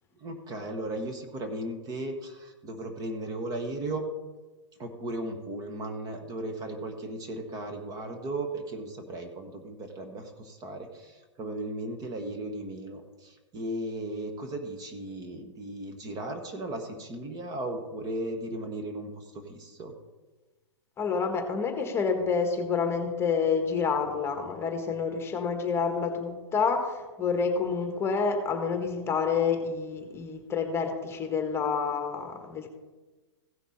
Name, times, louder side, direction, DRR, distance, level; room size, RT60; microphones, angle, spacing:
voice 1, 0.2-4.0 4.8-19.9, right 1 dB, 25° right, 6 dB, 1.3 m, -36 dB
voice 2, 21.0-32.7, left 5 dB, 15° left, 5 dB, 1.5 m, -28 dB
15.5 x 6.0 x 4.2 m, 1.2 s
hypercardioid pair, 125°, 15 cm